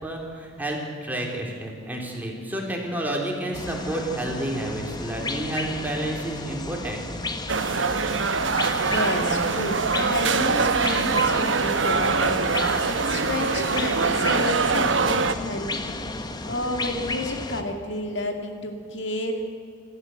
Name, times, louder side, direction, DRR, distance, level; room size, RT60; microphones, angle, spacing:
voice 1, 0.0-7.0, right 1 dB, 10° right, 0 dB, 3.7 m, -30 dB
sound 1, 3.5-17.6, left 2 dB, 20° left, 1.2 m, -33 dB
sound 2, 7.5-15.4, right 4 dB, 75° right, 1.1 m, -23 dB
voice 2, 8.8-15.7 16.5-19.4, left 1 dB, 65° left, 4 dB, 2.3 m, -31 dB
27.0 x 13.5 x 8.0 m, 2.3 s
head